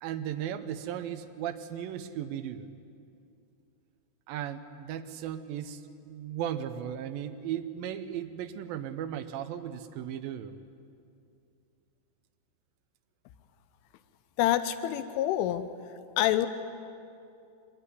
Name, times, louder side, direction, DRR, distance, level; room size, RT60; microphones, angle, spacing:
voice 1, 0.0-2.7 4.3-10.6, right 10 dB, 90° right, 8 dB, 2.0 m, -36 dB
voice 2, 14.4-15.7 16.2-16.5, left 13 dB, 90° left, 11 dB, 3.3 m, -26 dB
24.5 x 22.0 x 9.9 m, 2.5 s
omnidirectional pair, 5.4 m